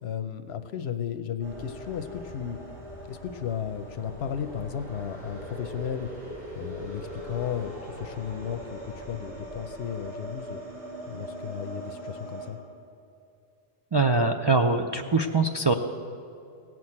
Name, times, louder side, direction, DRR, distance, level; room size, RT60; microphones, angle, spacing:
voice 1, 0.0-2.6 3.1-6.1 6.6-10.6 11.1-12.6, left 8 dB, 80° left, 10 dB, 0.9 m, -34 dB
sound 1, 1.4-12.5, equal, 85° right, 4.2 m, -40 dB
voice 2, 13.9-15.7, right 3 dB, 40° right, 3 dB, 0.4 m, -23 dB
17.0 x 6.2 x 8.6 m, 2.6 s
omnidirectional pair, 1.1 m